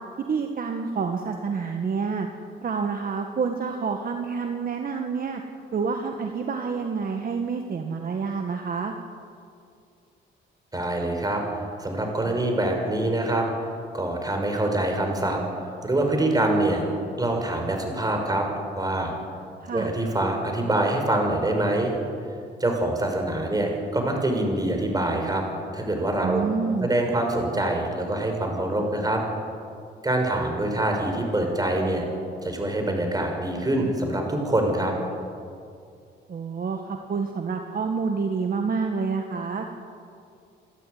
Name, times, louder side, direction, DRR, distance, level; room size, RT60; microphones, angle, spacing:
voice 1, 0.3-2.3 2.6-5.4 5.7-8.9 19.6-19.9 26.2-26.9 36.3-39.7, right 5 dB, 45° right, 4 dB, 1.8 m, -28 dB
voice 2, 10.7-13.5 13.9-15.4 15.8-16.8 17.2-18.5 18.8-19.1 19.7-21.9 22.6-25.4 25.7-26.4 26.8-29.2 30.0-32.0 32.4-34.9, right 1 dB, 20° right, 3 dB, 5.8 m, -25 dB
28.5 x 12.5 x 9.7 m, 2.4 s
cardioid pair, 90°, 20 cm